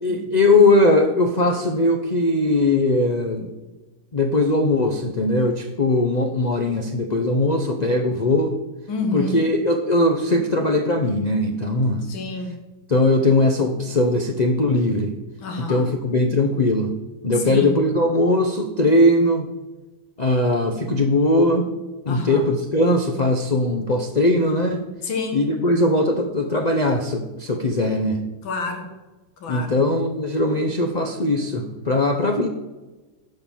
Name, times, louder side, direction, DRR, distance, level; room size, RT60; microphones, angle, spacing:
voice 1, 0.0-3.5 4.1-8.6 9.1-12.0 12.9-15.1 15.6-16.9 17.2-19.5 20.2-21.7 22.1-24.8 25.3-28.2 29.5-32.5, left 2 dB, 55° left, 3 dB, 0.4 m, -20 dB
voice 2, 8.9-9.4 12.0-12.5 15.4-15.9 17.3-17.7 22.1-22.4 25.0-25.4 28.4-28.9 29.4-29.8, left 3 dB, 90° left, 4 dB, 2.2 m, -29 dB
12.0 x 5.8 x 7.2 m, 1.1 s
omnidirectional pair, 2.1 m